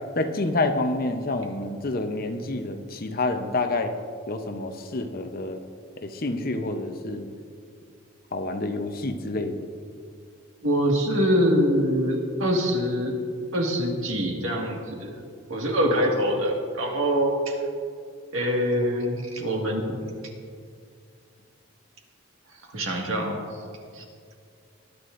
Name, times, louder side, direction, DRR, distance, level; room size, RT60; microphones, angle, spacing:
voice 1, 0.2-3.9 4.3-5.6 6.0-7.3 8.3-9.7, left 2 dB, 45° left, 6 dB, 0.7 m, -28 dB
voice 2, 10.6-13.1 13.5-15.1 15.5-17.5 18.3-19.9 22.7-23.4 23.9-24.0, equal, 75° right, 0 dB, 1.8 m, -24 dB
20.0 x 10.0 x 2.6 m, 2.3 s
head